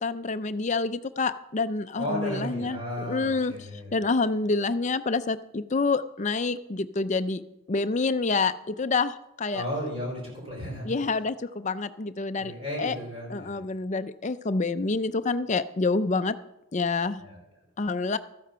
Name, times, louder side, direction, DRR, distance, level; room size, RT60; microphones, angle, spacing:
voice 1, 0.0-3.5 3.9-7.4 7.7-9.6 10.8-12.5 12.8-13.0 13.3-16.3 16.7-17.2 17.8-18.2, left 3 dB, 35° left, 12 dB, 0.5 m, -27 dB
voice 2, 2.0-4.0 9.5-10.9 12.3-13.6 17.2-17.4, equal, 25° right, -2 dB, 4.7 m, -34 dB
13.5 x 8.9 x 5.6 m, 0.87 s
head